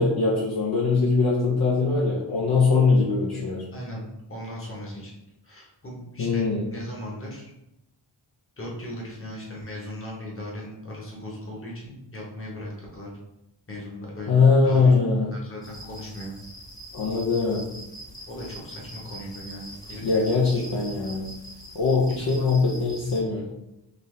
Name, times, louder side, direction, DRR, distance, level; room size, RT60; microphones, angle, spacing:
voice 1, 0.0-3.6 6.2-6.7 14.3-15.3 16.9-17.7 20.0-21.3 21.7-23.5, left 4 dB, 55° left, -5 dB, 0.7 m, -22 dB
voice 2, 3.7-5.1 5.4-7.5 8.6-13.1 13.7-14.3 14.6-14.9 15.3-16.3 18.3-20.0 20.5-20.6 22.2-22.5, left 1 dB, 30° left, -3 dB, 1.2 m, -38 dB
sound 1, 15.6-23.2, equal, 10° left, 0.7 m, -43 dB
4.1 x 2.7 x 3.3 m, 0.88 s
wide cardioid pair, 115°, 45 cm